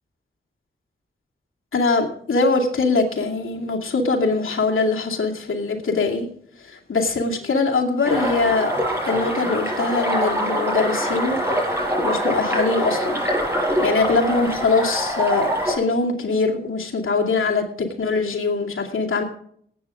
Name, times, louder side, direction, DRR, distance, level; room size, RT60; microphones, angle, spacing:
voice 1, 1.7-6.3 6.7-8.7 9.1-11.4 12.0-13.2 13.8-19.2, left 3 dB, 80° left, 0 dB, 2.5 m, -22 dB
sound 1, 8.0-15.8, equal, 10° right, 6.3 m, -24 dB
19.0 x 9.0 x 3.7 m, 0.62 s
cardioid pair, 45°, 21 cm